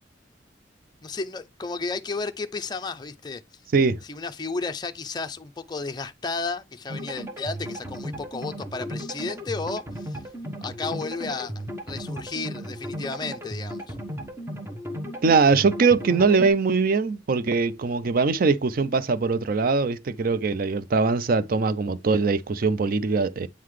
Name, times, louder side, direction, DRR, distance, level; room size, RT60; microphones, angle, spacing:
voice 1, 1.0-3.4 4.0-10.2 10.6-11.5 11.9-13.9, left 3 dB, 25° left, 0.5 m, -33 dB
sound 1, 6.9-16.5, equal, 15° right, 0.9 m, -35 dB
voice 2, 15.2-23.5, right 4 dB, 50° right, 0.5 m, -22 dB
8.4 x 3.8 x 3.1 m
head